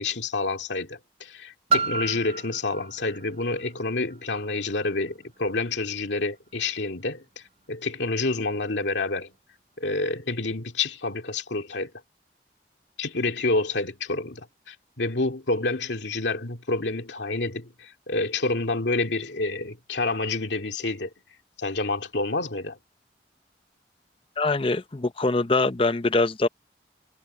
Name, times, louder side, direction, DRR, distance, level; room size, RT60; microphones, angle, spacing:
voice 1, 0.0-7.2 7.7-9.3 9.8-11.9 13.0-21.1 21.6-22.8, left 3 dB, 90° left, 2.4 m, -28 dB
Piano, 1.7-7.1 7.9-8.0, right 4 dB, 35° right, 0.4 m, -32 dB
voice 2, 24.4-26.5, left 3 dB, 30° left, 0.7 m, -23 dB
head